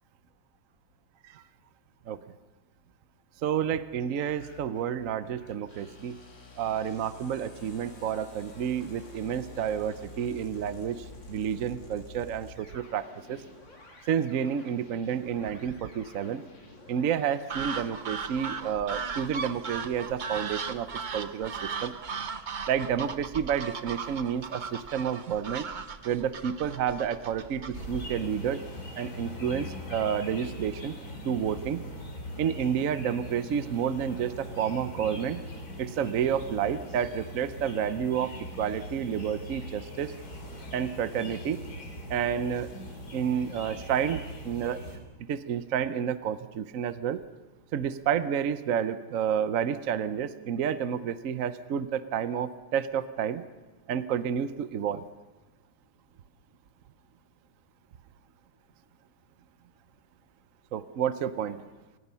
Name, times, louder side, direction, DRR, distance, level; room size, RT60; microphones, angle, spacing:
voice 1, 3.4-6.2 6.6-13.4 14.1-16.4 16.9-21.9 22.7-25.6 26.0-28.6 29.0-30.9 31.2-31.8 32.4-35.4 35.8-40.1 40.7-41.6 42.1-42.7 43.1-44.8 45.3-47.2 47.7-53.4 53.9-55.1 60.7-61.6, right 8 dB, 60° right, 12 dB, 0.9 m, -30 dB
sound 1, 3.8-18.7, left 3 dB, 70° left, 4.0 m, -50 dB
sound 2, 17.5-28.2, right 5 dB, 85° right, 0.4 m, -37 dB
sound 3, 27.7-45.0, left 1 dB, 50° left, 3.6 m, -41 dB
29.5 x 17.0 x 5.6 m, 1.2 s
omnidirectional pair, 2.1 m